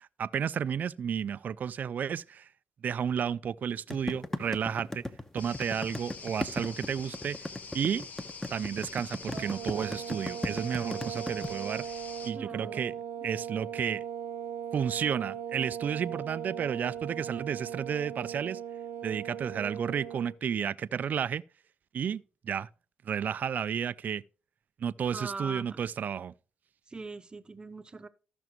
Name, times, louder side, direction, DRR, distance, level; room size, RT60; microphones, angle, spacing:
voice 1, 0.0-2.5 2.8-5.0 5.3-7.5 7.7-8.1 8.5-12.9 13.2-14.0 14.7-18.6 19.0-21.4 21.9-22.7 23.1-24.2 24.8-26.3, right 8 dB, 55° right, 0.3 m, -32 dB
sound 1, 3.9-11.5, left 1 dB, 10° left, 1.0 m, -36 dB
sound 2, 5.4-12.3, left 4 dB, 45° left, 1.2 m, -45 dB
sound 3, 9.3-20.4, right 9 dB, 85° right, 0.7 m, -39 dB
voice 2, 12.3-12.9 25.1-25.8 26.9-28.1, right 3 dB, 25° right, 0.8 m, -41 dB
14.0 x 6.0 x 3.0 m
cardioid pair, 80°, 4 cm